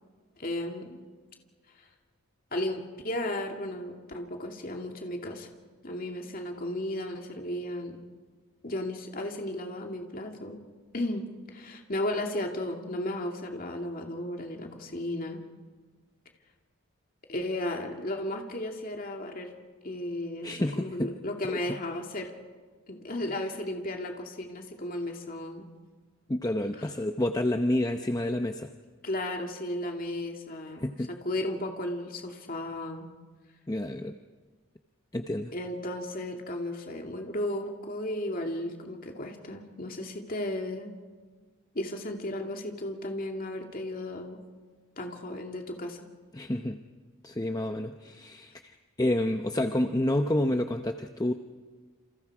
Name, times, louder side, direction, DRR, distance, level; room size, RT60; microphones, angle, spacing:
voice 1, 0.4-1.0 2.5-5.5 5.8-8.0 8.6-10.6 10.9-15.4 17.3-19.5 19.8-22.3 22.9-25.7 26.8-26.9 29.0-30.9 31.2-33.1 35.5-40.9 41.7-44.4 45.0-46.0, left 1 dB, 40° left, 2 dB, 2.5 m, -34 dB
voice 2, 20.4-21.1 21.5-21.6 26.3-28.7 30.8-31.1 33.7-34.2 35.1-35.5 46.3-46.8 47.2-51.3, left 1 dB, 15° left, 6 dB, 0.7 m, -29 dB
29.0 x 27.5 x 4.9 m, 1.5 s
head